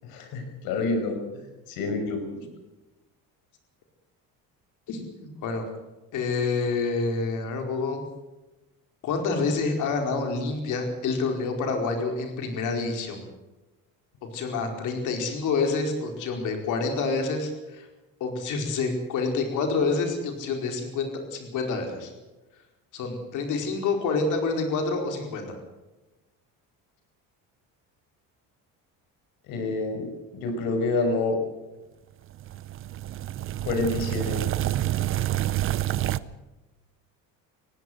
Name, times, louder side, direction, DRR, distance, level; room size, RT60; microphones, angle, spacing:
voice 1, 0.0-2.2 29.5-31.4 33.6-34.4, left 3 dB, 85° left, 5 dB, 5.7 m, -28 dB
voice 2, 4.9-5.6 6.1-8.0 9.0-13.2 14.2-17.9 18.2-22.1 22.9-25.5, left 4 dB, 60° left, 4 dB, 4.7 m, -28 dB
sound 1, 32.3-36.2, right 13 dB, 40° right, 0.6 m, -28 dB
20.0 x 16.5 x 8.1 m, 1.1 s
cardioid pair, 155°, 35 cm